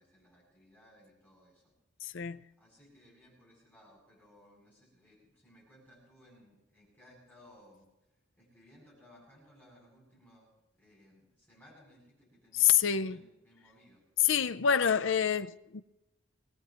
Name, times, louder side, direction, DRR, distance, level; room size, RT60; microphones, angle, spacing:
voice 1, 0.0-1.7 2.1-7.9 8.3-14.0, equal, 10° left, 7.9 m, -61 dB
voice 2, 2.0-2.4 12.6-13.2 14.2-15.8, left 8 dB, 75° left, 0.6 m, -27 dB
22.5 x 18.0 x 3.0 m
head